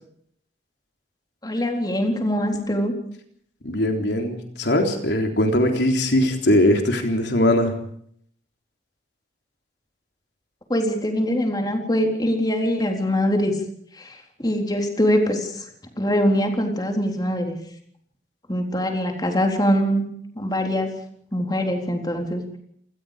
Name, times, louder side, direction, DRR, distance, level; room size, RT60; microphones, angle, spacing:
voice 1, 1.4-3.0 10.7-13.5 13.9-15.7 16.0-17.6 18.5-20.1 20.4-20.9 21.3-22.4, equal, 20° left, 3 dB, 3.9 m, -23 dB
voice 2, 3.6-7.7, left 1 dB, 70° left, 3 dB, 3.7 m, -20 dB
28.0 x 20.0 x 5.1 m, 0.65 s
head